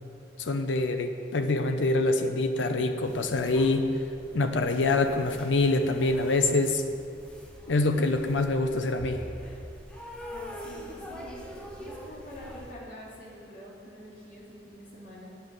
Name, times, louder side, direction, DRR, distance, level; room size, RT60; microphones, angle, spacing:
voice 1, 0.4-3.9 4.3-6.8 7.7-9.2, left 2 dB, 85° left, 7 dB, 0.6 m, -25 dB
sound 1, 3.0-12.7, equal, 5° left, 0.9 m, -44 dB
voice 2, 10.3-15.4, equal, 50° left, -6 dB, 2.6 m, -46 dB
8.8 x 5.6 x 8.1 m, 2.6 s
head